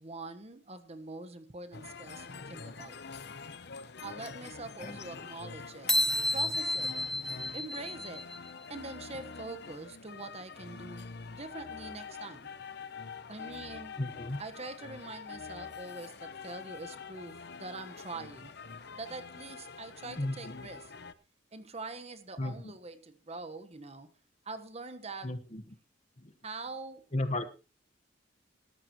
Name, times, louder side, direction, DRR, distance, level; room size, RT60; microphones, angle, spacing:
voice 1, 0.0-3.0 4.0-6.0 6.3-6.9 7.5-8.3 8.7-12.5 13.3-14.0 14.4-18.5 19.0-20.9 21.5-24.1 24.4-25.3 26.4-27.1, right 3 dB, 35° right, 10 dB, 1.3 m, -44 dB
sound 1, 1.7-21.1, left 5 dB, 65° left, 0.9 m, -45 dB
voice 2, 4.8-5.3 14.0-14.4 20.2-20.6 22.4-22.7 25.2-25.6 26.2-26.3 27.1-27.5, left 1 dB, 40° left, 8 dB, 1.3 m, -35 dB
sound 2, 5.9-8.5, left 1 dB, 5° left, 0.9 m, -31 dB
18.5 x 13.5 x 3.1 m, 0.31 s
head